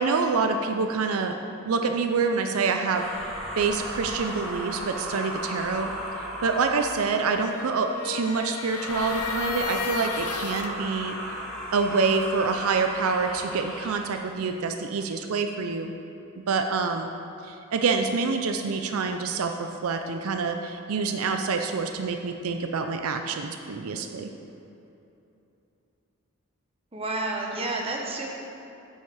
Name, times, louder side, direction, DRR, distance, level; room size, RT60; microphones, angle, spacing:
voice 1, 0.0-1.4 1.7-3.1 3.6-5.9 6.4-11.2 11.7-15.9 16.5-17.1 17.4-24.3, right 4 dB, 80° right, 6 dB, 0.5 m, -26 dB
sound 1, 2.7-7.3 8.7-14.1, equal, ahead, 1.8 m, -35 dB
sound 2, 7.1-10.7, left 7 dB, 90° left, 0.5 m, -34 dB
voice 2, 26.9-28.3, right 2 dB, 25° right, 0 dB, 1.0 m, -30 dB
8.2 x 7.2 x 4.8 m, 2.9 s
head